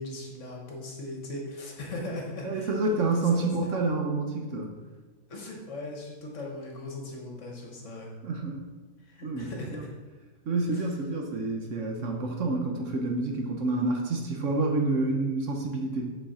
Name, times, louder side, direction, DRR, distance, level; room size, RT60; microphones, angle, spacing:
voice 1, 0.0-3.7 5.3-8.1 9.0-9.9 10.7-10.9, left 2 dB, 55° left, 0 dB, 1.4 m, -39 dB
voice 2, 2.4-4.7 8.2-8.6 9.2-9.8 10.5-16.1, right 3 dB, 60° right, 2 dB, 1.0 m, -28 dB
6.1 x 5.6 x 4.1 m, 1.3 s
omnidirectional pair, 1.7 m